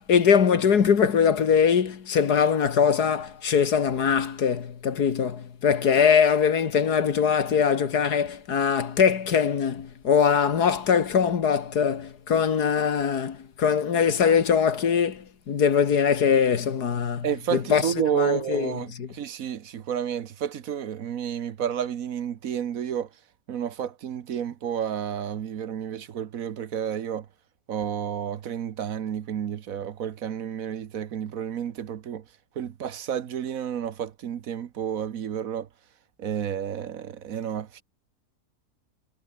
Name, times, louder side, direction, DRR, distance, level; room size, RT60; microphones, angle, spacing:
voice 1, 0.0-17.3 17.5-18.7 19.0-19.1, left 7 dB, 80° left, 2.2 m, -22 dB
voice 2, 17.2-23.1 23.5-27.3 27.7-32.2 32.6-35.7 36.2-37.8, right 9 dB, 65° right, 1.3 m, -30 dB
omnidirectional pair, 1.7 m